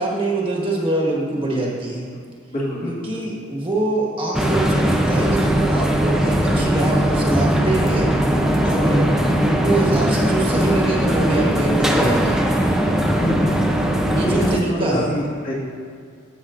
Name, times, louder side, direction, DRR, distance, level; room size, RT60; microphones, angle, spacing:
voice 1, 0.0-2.0 2.8-8.1 8.6-12.4 13.1-13.2 14.1-15.1, right 2 dB, 25° right, -4 dB, 1.4 m, -24 dB
voice 2, 2.5-3.1 8.9-9.1 13.2-13.7 14.2-15.6, equal, 45° left, -6 dB, 1.9 m, -25 dB
sound 1, 4.3-14.6, equal, 5° right, 0.5 m, -19 dB
16.0 x 5.9 x 2.5 m, 2.1 s
head